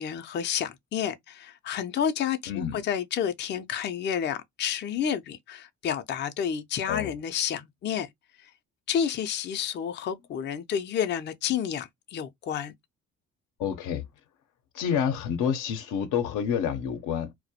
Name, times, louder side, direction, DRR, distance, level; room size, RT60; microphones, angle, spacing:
voice 1, 0.0-8.1 8.4-8.5 8.9-12.7, left 8 dB, 35° left, 0.4 m, -30 dB
voice 2, 2.5-2.8 6.9-7.1 13.6-14.1 14.7-17.3, left 8 dB, 85° left, 0.6 m, -28 dB
2.2 x 2.1 x 2.7 m
cardioid pair, 90°, 30 cm